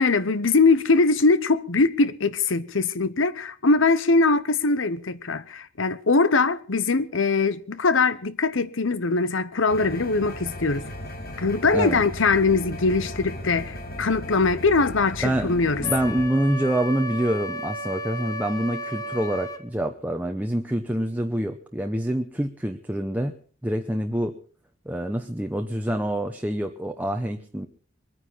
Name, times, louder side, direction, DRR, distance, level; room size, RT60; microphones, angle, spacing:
voice 1, 0.0-10.8 11.4-15.8, left 3 dB, 85° left, 0.9 m, -22 dB
sound 1, 9.7-16.3, left 1 dB, 50° left, 2.1 m, -36 dB
voice 2, 15.2-15.5 15.8-23.3 23.6-24.4 24.9-27.7, right 1 dB, 10° right, 0.8 m, -26 dB
Wind instrument woodwind instrument, 15.8-19.6, equal, 20° left, 1.4 m, -34 dB
22.0 x 9.8 x 5.7 m
head